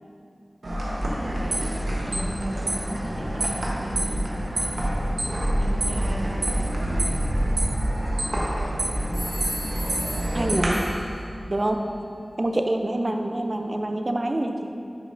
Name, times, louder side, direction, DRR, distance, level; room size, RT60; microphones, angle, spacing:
sound 1, 0.6-10.7, right 1 dB, 80° right, 1.1 m, -26 dB
voice 1, 1.0-4.4 5.6-6.7, right 1 dB, 60° right, -4 dB, 1.3 m, -36 dB
sound 2, 7.9-8.6 9.1-11.3, right 1 dB, 20° right, 1.2 m, -37 dB
voice 2, 10.3-10.8 11.5-11.8 12.4-14.6, right 1 dB, 45° right, 4 dB, 0.5 m, -25 dB
9.6 x 5.1 x 2.6 m, 2.4 s
wide cardioid pair, 50°, 0 cm